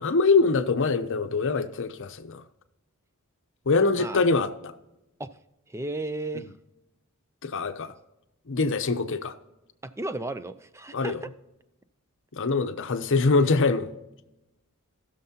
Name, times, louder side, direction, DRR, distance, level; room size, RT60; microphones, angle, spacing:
voice 1, 0.0-2.4 3.7-4.7 7.4-7.9 8.5-9.3 10.9-11.2 12.3-13.9, left 4 dB, 60° left, 9 dB, 0.7 m, -24 dB
voice 2, 5.7-6.5 9.8-11.3, right 2 dB, 10° right, 12 dB, 0.5 m, -34 dB
19.0 x 6.6 x 2.8 m, 0.98 s
head